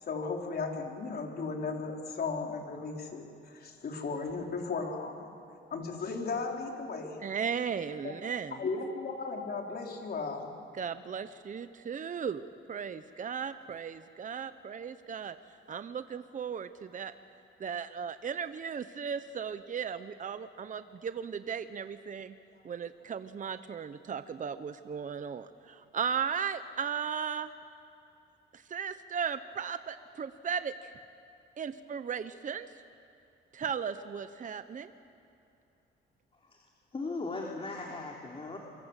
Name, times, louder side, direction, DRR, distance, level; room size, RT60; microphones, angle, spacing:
voice 1, 0.0-5.2 5.7-7.2 8.0-8.1 8.6-10.5, left 4 dB, 55° left, 1 dB, 4.5 m, -36 dB
voice 2, 7.2-8.6 10.7-12.4 12.7-15.4 15.7-17.1 17.6-22.3 22.6-27.5 28.5-30.9 31.6-32.7 33.5-34.9, right 7 dB, 40° right, 11 dB, 1.0 m, -36 dB
voice 3, 36.9-38.6, left 3 dB, 30° left, -1 dB, 3.4 m, -38 dB
28.0 x 24.0 x 8.3 m, 2.7 s
cardioid pair, 90°, 20 cm